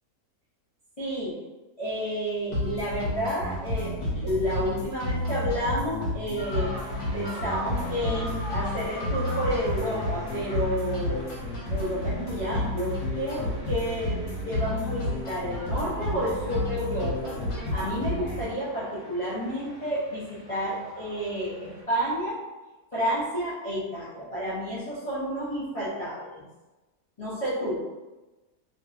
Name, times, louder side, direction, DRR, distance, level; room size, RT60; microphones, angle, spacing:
voice 1, 1.0-1.3 1.8-3.9 4.2-6.7 7.1-11.2 11.7-14.2 14.5-17.4 17.7-22.4 22.9-26.4 27.2-27.8, equal, 55° left, -10 dB, 0.4 m, -30 dB
sound 1, 2.5-18.5, left 1 dB, 85° left, 1.2 m, -31 dB
sound 2, 6.4-21.8, equal, 25° right, 0.4 m, -42 dB
2.6 x 2.5 x 2.3 m, 1.1 s
omnidirectional pair, 1.6 m